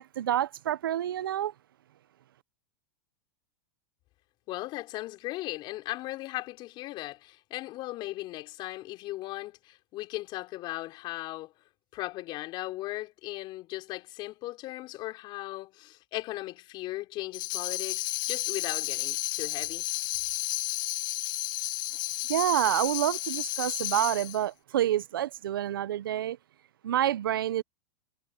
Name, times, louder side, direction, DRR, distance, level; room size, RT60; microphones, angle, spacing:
voice 1, 0.0-1.5 22.3-26.4 26.8-27.6, right 12 dB, 90° right, 0.6 m, -28 dB
voice 2, 4.5-11.5 11.9-19.8, left 17 dB, 45° left, 4.4 m, -37 dB
Tambourine, 17.3-24.4, left 19 dB, 65° left, 1.2 m, -32 dB
supercardioid pair, 125°, 11 cm